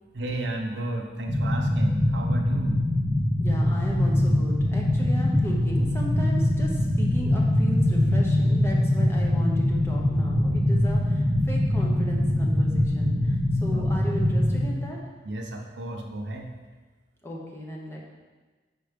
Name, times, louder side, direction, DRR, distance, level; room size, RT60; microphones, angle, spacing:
voice 1, 0.1-2.8 13.7-13.9 15.2-16.5, right 1 dB, 85° right, 2 dB, 0.8 m, -33 dB
sound 1, 1.3-14.7, left 1 dB, 40° right, 0.8 m, -23 dB
voice 2, 3.4-13.1 13.6-15.0 17.2-18.0, equal, 15° left, -2 dB, 0.9 m, -36 dB
5.1 x 4.5 x 5.1 m, 1.3 s
head